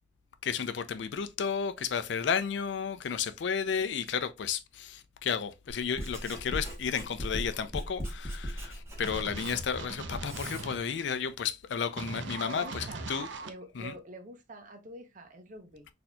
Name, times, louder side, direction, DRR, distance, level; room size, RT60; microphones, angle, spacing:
voice 1, 0.4-13.3 13.7-13.9, left 7 dB, 70° left, 0.4 m, -33 dB
Writing, 5.7-10.7, equal, 15° right, 1.2 m, -39 dB
sound 1, 9.0-10.8 12.0-13.5, right 3 dB, 85° right, 0.6 m, -39 dB
voice 2, 12.4-13.1 13.4-15.9, right 1 dB, 45° right, 0.8 m, -47 dB
4.2 x 2.7 x 2.2 m
head